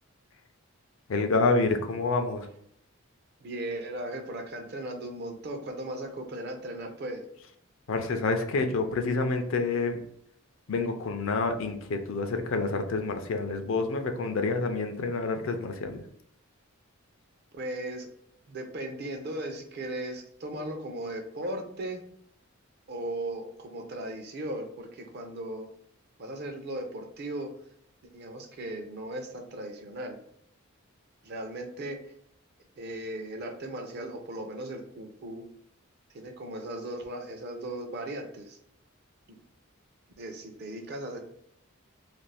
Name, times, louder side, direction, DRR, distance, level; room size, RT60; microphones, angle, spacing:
voice 1, 1.1-2.5 7.9-10.0 10.7-16.0, left 3 dB, 60° left, 6 dB, 0.4 m, -28 dB
voice 2, 3.4-7.2 17.6-18.1 18.5-22.0 22.9-25.7 26.2-27.5 28.1-30.2 31.2-32.0 32.8-35.4 36.1-38.6 39.3-39.4 40.2-41.2, right 1 dB, 50° right, 4 dB, 0.5 m, -37 dB
2.5 x 2.3 x 3.3 m, 0.69 s
head